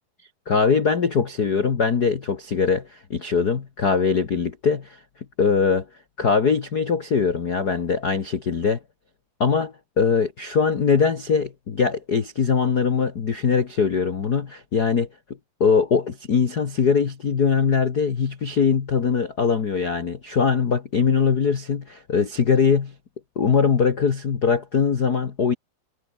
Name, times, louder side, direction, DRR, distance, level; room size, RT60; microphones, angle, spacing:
voice 1, 0.5-5.0 5.4-5.8 6.2-8.8 9.4-15.1 15.6-22.9 23.3-25.5, left 5 dB, 80° left, 0.8 m, -21 dB
omnidirectional pair, 4.4 m